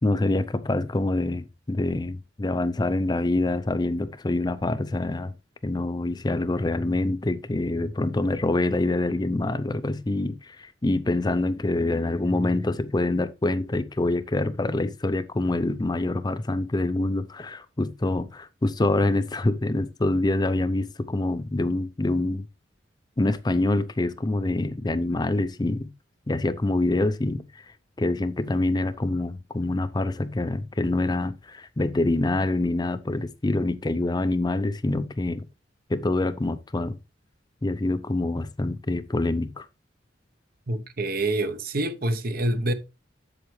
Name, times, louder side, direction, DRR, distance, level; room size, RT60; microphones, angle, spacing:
voice 1, 0.0-5.3 5.6-22.5 23.2-25.9 26.3-27.6 28.0-35.5 35.9-37.0 37.6-39.7, left 2 dB, 25° left, 0.5 m, -26 dB
voice 2, 40.7-42.7, right 1 dB, 55° right, 0.9 m, -26 dB
7.8 x 7.3 x 3.2 m
head